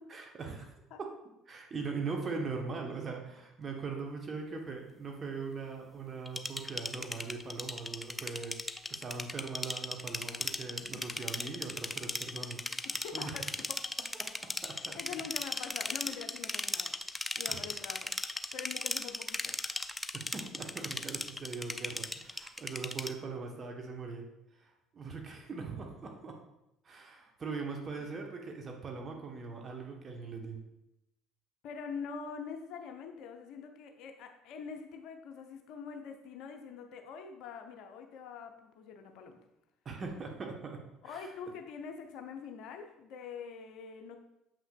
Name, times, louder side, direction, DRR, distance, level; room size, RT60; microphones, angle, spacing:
voice 1, 0.1-1.1 1.5-13.4 14.6-15.0 17.5-17.6 20.3-24.2 24.5-26.4 26.8-30.6 39.8-41.3, right 4 dB, 35° right, 1 dB, 1.0 m, -41 dB
sound 1, 6.3-23.1, left 2 dB, 10° left, 0.4 m, -37 dB
voice 2, 12.8-13.9 14.7-16.9 17.4-18.1 18.5-19.6 28.0-28.1 31.6-39.4 41.0-44.2, left 6 dB, 55° left, 5 dB, 0.6 m, -44 dB
7.3 x 5.7 x 2.3 m, 0.86 s
figure-of-eight pair, 55°, 0 cm